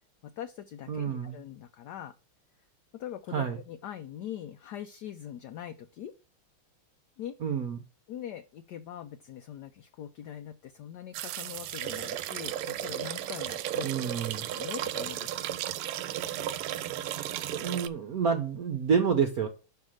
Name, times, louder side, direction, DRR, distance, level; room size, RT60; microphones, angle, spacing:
voice 1, 0.2-2.1 2.9-6.1 7.2-7.3 8.1-13.9 14.4-15.4, left 10 dB, 70° left, 7 dB, 1.0 m, -42 dB
voice 2, 0.9-1.4 3.3-3.6 7.4-7.8 13.8-14.5 16.4-16.7 17.5-19.5, right 6 dB, 60° right, 5 dB, 1.0 m, -29 dB
sound 1, 11.1-17.9, right 12 dB, 90° right, 1.5 m, -34 dB
5.7 x 4.8 x 6.3 m, 0.34 s
omnidirectional pair, 2.4 m